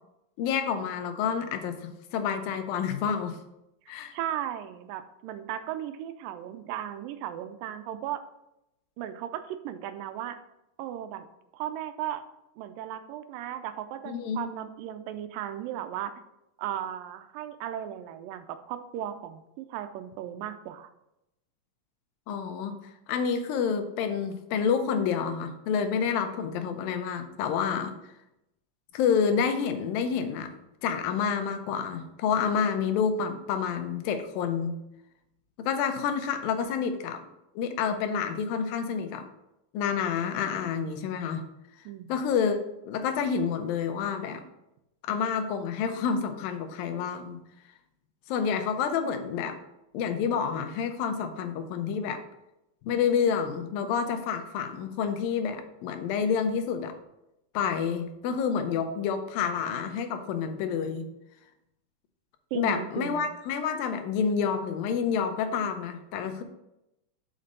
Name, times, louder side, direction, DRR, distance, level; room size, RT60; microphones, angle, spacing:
voice 1, 0.4-3.4 3.9-4.1 14.1-14.5 22.3-22.8 23.1-27.9 28.9-30.5 30.8-34.8 35.6-37.2 37.6-39.3 39.7-41.4 42.1-42.6 42.8-44.4 45.0-47.4 48.3-49.6 49.9-52.2 52.8-56.9 57.5-61.1 62.5-66.4, left 6 dB, 90° left, 7 dB, 2.5 m, -28 dB
voice 2, 4.1-8.2 9.0-10.4 10.8-11.2 11.5-12.2 12.6-16.1 16.6-20.9 41.9-42.1 62.5-63.3, right 11 dB, 80° right, 10 dB, 2.2 m, -36 dB
6.7 x 5.1 x 5.3 m, 0.88 s
omnidirectional pair, 4.0 m